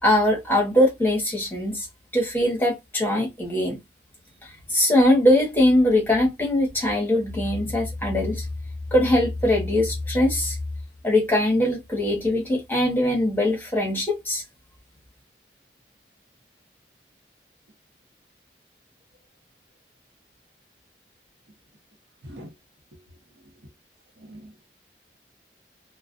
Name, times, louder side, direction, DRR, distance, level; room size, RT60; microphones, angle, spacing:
voice 1, 0.0-1.9 2.1-3.8 4.4-8.5 8.9-10.6 11.0-14.4, left 1 dB, 10° left, 0.9 m, -21 dB
voice 2, 24.2-24.7, equal, 85° right, 0.7 m, -42 dB
2.4 x 2.1 x 2.4 m
head